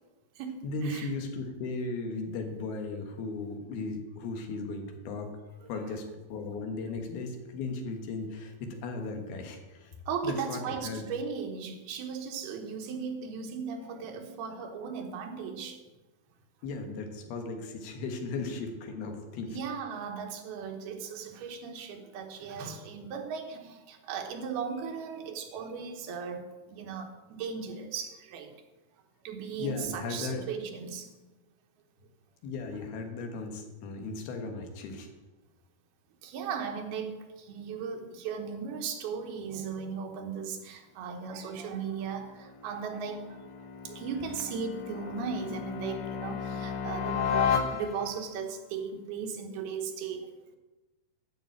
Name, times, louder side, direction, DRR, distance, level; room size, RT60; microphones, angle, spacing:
voice 1, 0.6-5.3 5.7-9.9 10.2-11.0 16.6-19.6 29.6-30.4 32.4-35.1, left 3 dB, 80° left, 4 dB, 3.4 m, -36 dB
voice 2, 10.1-15.8 19.5-28.5 29.2-31.1 36.2-43.4 43.8-50.3, right 6 dB, 80° right, 5 dB, 3.2 m, -37 dB
sound 1, 41.9-48.3, left 7 dB, 65° left, 1.8 m, -34 dB
12.5 x 5.4 x 8.5 m, 1.1 s
omnidirectional pair, 4.4 m